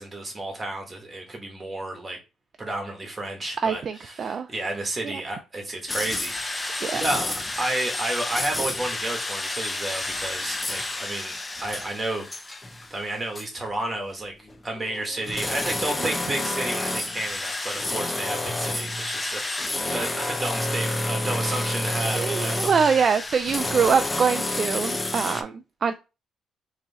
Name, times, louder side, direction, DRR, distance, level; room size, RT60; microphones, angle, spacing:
voice 1, 0.0-2.2 2.6-11.4 11.6-12.3 12.9-22.7, right 2 dB, 25° right, 1.7 m, -32 dB
voice 2, 3.6-4.5 5.0-5.1 6.8-7.0 22.1-25.5 25.8-25.9, right 6 dB, 50° right, 0.4 m, -24 dB
sound 1, 5.9-13.1 13.3-13.5 14.5-25.4, left 2 dB, 20° left, 0.6 m, -29 dB
3.7 x 3.1 x 3.6 m
cardioid pair, 90°, 0 cm